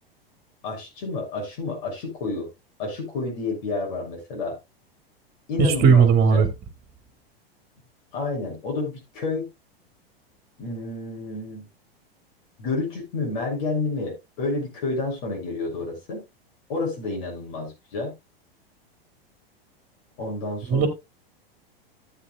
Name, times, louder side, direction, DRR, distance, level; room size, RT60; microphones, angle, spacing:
voice 1, 0.6-2.5 2.8-4.5 5.5-6.4 8.1-9.4 10.6-11.6 12.6-16.2 16.7-18.1 20.2-20.9, left 3 dB, 60° left, 6.8 m, -30 dB
voice 2, 5.6-6.5 20.7-20.9, right 6 dB, 30° right, 2.2 m, -16 dB
14.0 x 8.4 x 2.3 m
hypercardioid pair, 100°, 30 cm